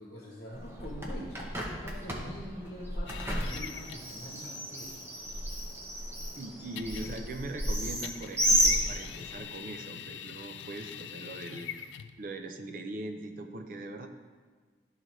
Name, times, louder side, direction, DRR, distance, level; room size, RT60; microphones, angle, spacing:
voice 1, 0.0-5.0, equal, 55° left, -4 dB, 1.0 m, -44 dB
Bird, 0.5-9.4, equal, 15° right, 0.7 m, -32 dB
sound 1, 3.1-4.2 6.8-7.5 8.0-12.2, left 9 dB, 85° left, 0.3 m, -43 dB
voice 2, 6.3-14.1, right 2 dB, 50° right, 6 dB, 0.5 m, -41 dB
11.5 x 3.9 x 3.1 m, 1.5 s
head